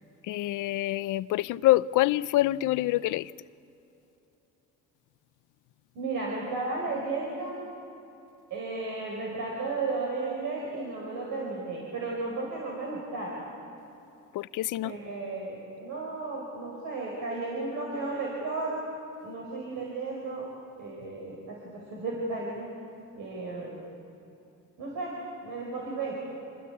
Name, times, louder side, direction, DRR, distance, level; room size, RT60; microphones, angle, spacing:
voice 1, 0.2-3.3 14.3-14.9, left 16 dB, 90° left, 0.6 m, -26 dB
voice 2, 5.9-7.6 8.5-13.4 14.8-18.8 19.2-20.5 20.8-22.7 23.2-23.8 24.8-25.2 25.4-26.2, right 3 dB, 85° right, 5.4 m, -34 dB
28.0 x 24.5 x 8.4 m
cardioid pair, 90°, 30 cm